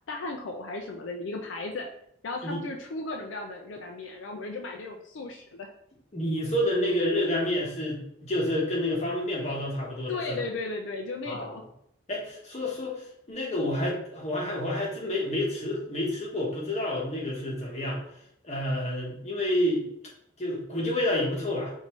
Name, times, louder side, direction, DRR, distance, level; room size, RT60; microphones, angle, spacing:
voice 1, 0.1-1.9 2.2-5.7 10.1-11.6, left 3 dB, 75° left, 2 dB, 0.4 m, -35 dB
voice 2, 6.1-10.4 11.3-11.6 12.1-18.0 18.4-19.8 20.4-21.7, left 1 dB, 35° left, -3 dB, 1.2 m, -29 dB
5.1 x 2.7 x 3.1 m, 0.72 s
head